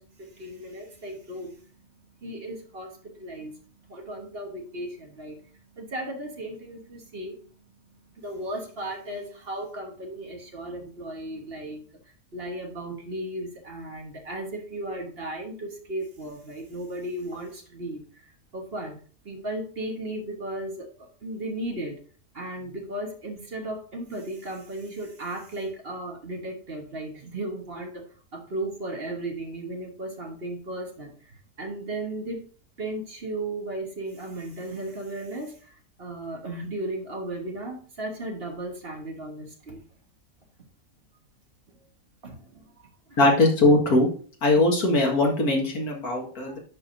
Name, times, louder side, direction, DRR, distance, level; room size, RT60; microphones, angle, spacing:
voice 1, 0.0-11.8 12.3-19.0 19.2-22.0 22.3-28.0 28.3-32.4 32.8-39.8 42.2-42.7 43.1-43.2, right 1 dB, 45° right, 2 dB, 1.4 m, -36 dB
voice 2, 43.2-44.1 44.4-46.6, left 2 dB, 90° left, 0 dB, 2.2 m, -20 dB
10.5 x 4.8 x 2.6 m, 0.42 s
omnidirectional pair, 1.5 m